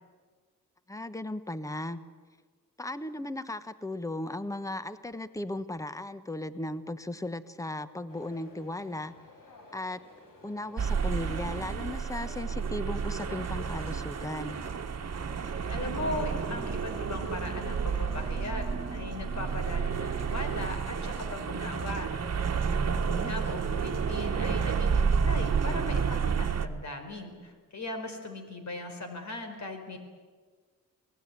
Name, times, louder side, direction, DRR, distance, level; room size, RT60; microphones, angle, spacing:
voice 1, 0.9-2.0 2.8-9.1 9.7-10.0 10.4-14.6 23.0-23.3, left 1 dB, 10° left, 13 dB, 1.2 m, -36 dB
sound 1, 8.1-18.3, left 3 dB, 75° left, 5.5 m, -54 dB
sound 2, 10.8-26.7, right 6 dB, 50° right, 1.5 m, -30 dB
voice 2, 15.7-22.1 22.8-30.0, left 2 dB, 55° left, 6 dB, 4.5 m, -38 dB
Drum, 16.3-25.6, right 2 dB, 20° right, 3.9 m, -47 dB
25.0 x 18.5 x 9.4 m, 1.5 s
cardioid pair, 90°, 33 cm